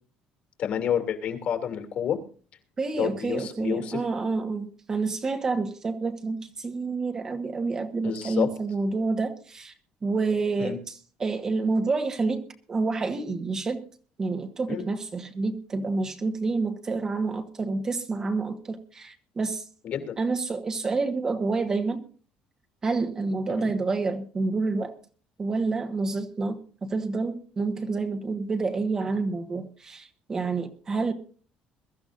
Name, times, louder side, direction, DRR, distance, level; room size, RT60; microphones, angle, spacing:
voice 1, 0.6-2.2 3.0-4.0 8.0-8.5 10.6-10.8 14.7-14.8 19.8-20.2 23.6-23.7, left 9 dB, 45° left, 5 dB, 2.8 m, -29 dB
voice 2, 2.8-9.7 10.0-13.8 14.2-19.6 20.2-22.0 22.8-24.9 25.4-31.1, right 3 dB, 20° right, 5 dB, 1.3 m, -28 dB
22.5 x 13.5 x 2.6 m, 0.40 s
cardioid pair, 170°, 3 cm